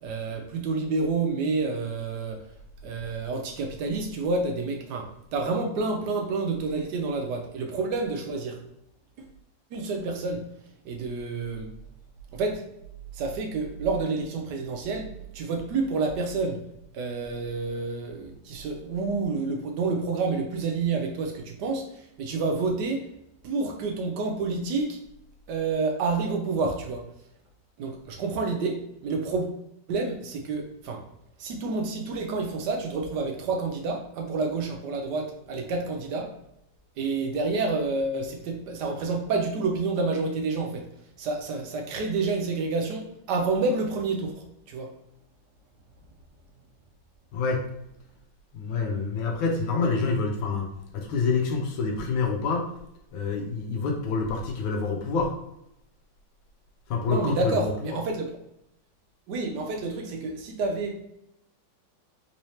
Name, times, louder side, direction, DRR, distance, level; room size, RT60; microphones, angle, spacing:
voice 1, 0.0-2.4 2.8-8.6 9.2-9.3 9.7-10.5 10.8-11.7 12.3-12.6 13.1-15.1 15.3-16.6 16.9-23.1 23.4-25.0 25.5-27.1 27.8-29.5 29.9-31.0 31.4-36.3 37.0-40.9 41.2-44.9 57.1-58.3 59.3-60.9, right 3 dB, 70° right, 3 dB, 1.0 m, -29 dB
voice 2, 48.5-50.7 50.9-52.7 53.1-55.3 56.9-58.0, left 4 dB, 90° left, 2 dB, 1.4 m, -27 dB
3.7 x 2.8 x 3.1 m, 0.79 s
omnidirectional pair, 2.1 m